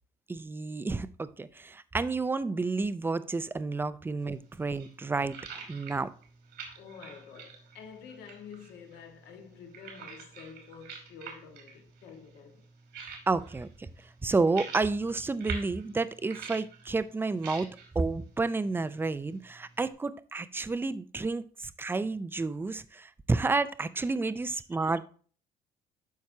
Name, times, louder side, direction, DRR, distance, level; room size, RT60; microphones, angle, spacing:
voice 1, 0.3-6.1 13.3-13.9 14.2-17.7 17.9-25.0, right 3 dB, 15° right, 0.4 m, -30 dB
sound 1, 4.2-19.9, right 6 dB, 80° right, 2.5 m, -48 dB
voice 2, 6.7-12.7 24.1-24.2 24.5-24.9, left 6 dB, 75° left, 1.6 m, -49 dB
12.0 x 4.6 x 2.8 m
cardioid pair, 110°, 17 cm